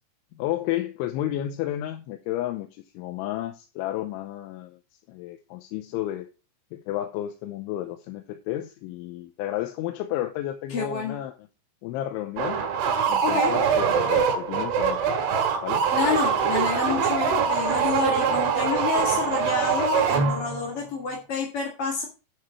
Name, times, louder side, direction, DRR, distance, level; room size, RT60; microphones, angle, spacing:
voice 1, 0.3-4.8 5.1-6.3 6.7-11.3 11.8-12.6 13.1-15.2 15.6-15.9, left 13 dB, 80° left, 6 dB, 3.1 m, -32 dB
voice 2, 10.7-11.2 13.2-13.5 15.9-22.0, left 4 dB, 50° left, 0 dB, 1.7 m, -28 dB
sound 1, 12.4-20.7, right 6 dB, 80° right, 3.9 m, -23 dB
9.8 x 6.2 x 4.6 m, 0.33 s
omnidirectional pair, 5.5 m